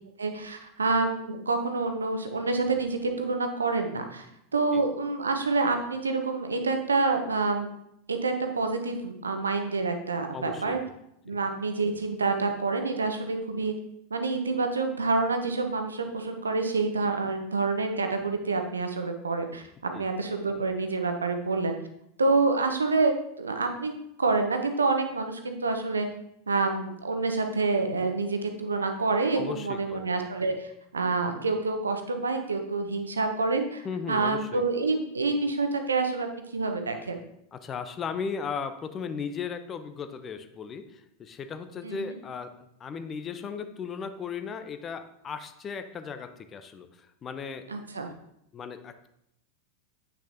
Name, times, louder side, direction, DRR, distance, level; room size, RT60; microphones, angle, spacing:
voice 1, 0.2-4.3 4.5-7.7 8.1-10.8 11.3-13.7 14.1-21.8 22.2-23.1 23.4-23.9 24.2-26.1 26.5-30.7 30.9-33.8 34.1-37.2 41.8-42.1 47.7-48.1, right 3 dB, 80° right, 6 dB, 0.8 m, -27 dB
voice 2, 10.3-10.8 19.9-20.1 29.4-30.1 33.8-34.6 37.5-42.5 42.8-47.7 48.5-49.1, left 6 dB, 25° left, 9 dB, 0.6 m, -36 dB
8.3 x 6.2 x 2.7 m, 0.77 s
figure-of-eight pair, 90°, 0 cm